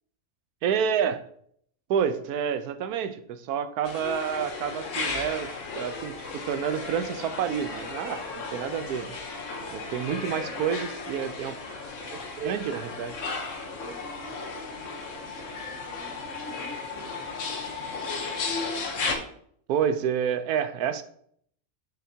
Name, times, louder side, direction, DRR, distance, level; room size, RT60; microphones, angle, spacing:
voice 1, 0.6-1.2 1.9-8.2 8.5-9.2 9.7-11.5 12.1-13.1 19.7-21.0, right 8 dB, 85° right, 11 dB, 1.1 m, -29 dB
sound 1, 3.8-19.2, left 4 dB, 60° left, 1.3 m, -35 dB
voice 2, 9.6-10.5 13.5-17.3, right 1 dB, 65° right, -7 dB, 2.3 m, -47 dB
sound 2, 12.5-18.7, left 6 dB, 40° left, 1.9 m, -41 dB
7.8 x 6.4 x 2.8 m, 0.65 s
omnidirectional pair, 1.6 m